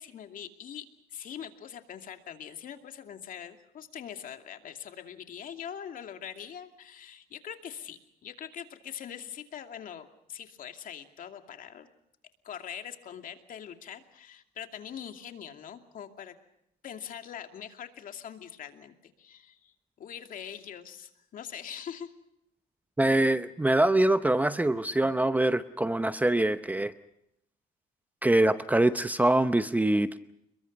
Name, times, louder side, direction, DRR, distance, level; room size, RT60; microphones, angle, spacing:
voice 1, 0.0-11.9 12.4-16.3 16.8-22.1, left 8 dB, 55° left, 6 dB, 2.5 m, -43 dB
voice 2, 23.0-26.9 28.2-30.2, right 1 dB, 10° right, 11 dB, 0.8 m, -24 dB
29.5 x 22.0 x 5.4 m, 0.80 s
cardioid pair, 110°, 17 cm